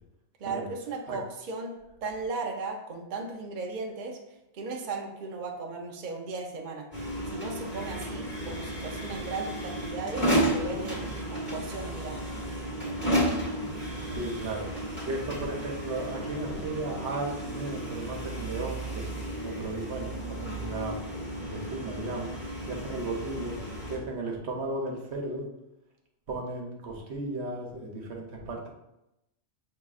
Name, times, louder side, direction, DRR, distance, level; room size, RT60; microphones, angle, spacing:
voice 1, 0.4-4.2 4.5-6.9 7.3-12.3, right 3 dB, 55° right, 1 dB, 0.6 m, -36 dB
sound 1, 6.9-24.0, right 1 dB, 10° left, 1.1 m, -33 dB
voice 2, 14.1-14.7 15.0-19.1 19.4-21.0 21.4-23.6 23.9-25.5 26.3-28.7, right 2 dB, 70° right, 0 dB, 1.1 m, -35 dB
6.4 x 2.8 x 2.4 m, 0.89 s
omnidirectional pair, 1.2 m